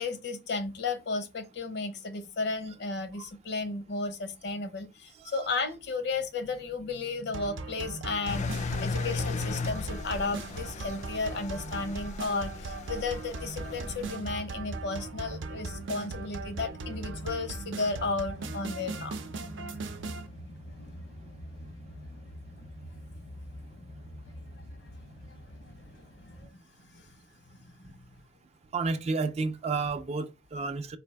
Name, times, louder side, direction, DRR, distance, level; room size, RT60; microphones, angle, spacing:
voice 1, 0.0-19.2 26.2-27.1 27.5-28.0, left 3 dB, 65° left, 0.7 m, -34 dB
voice 2, 5.2-5.6 28.7-31.0, right 4 dB, 35° right, 0.3 m, -31 dB
sound 1, 7.3-20.3, right 3 dB, 90° right, 0.5 m, -39 dB
Engine, 8.3-14.1, left 4 dB, 40° left, 0.3 m, -36 dB
sound 2, 13.6-26.5, equal, 80° left, 1.0 m, -45 dB
4.1 x 2.6 x 3.3 m
head